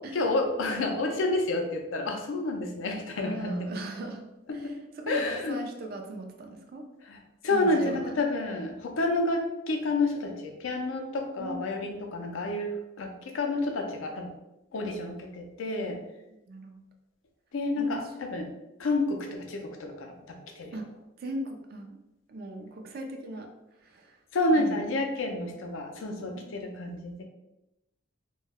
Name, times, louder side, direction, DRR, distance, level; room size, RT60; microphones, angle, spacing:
voice 1, 0.1-3.8 4.5-4.7 5.1-5.6 7.1-7.2 7.4-14.3 14.7-16.0 17.5-18.5 18.8-20.7 24.3-27.2, left 2 dB, 80° left, 3 dB, 0.5 m, -29 dB
voice 2, 3.2-6.9 7.5-8.2 11.4-11.8 16.3-16.8 17.8-18.1 20.7-20.9 21.2-22.0 22.3-23.5 23.8-24.2 24.5-24.8 26.3-26.7, right 1 dB, 50° right, 4 dB, 0.4 m, -39 dB
2.2 x 2.0 x 3.4 m, 0.92 s
head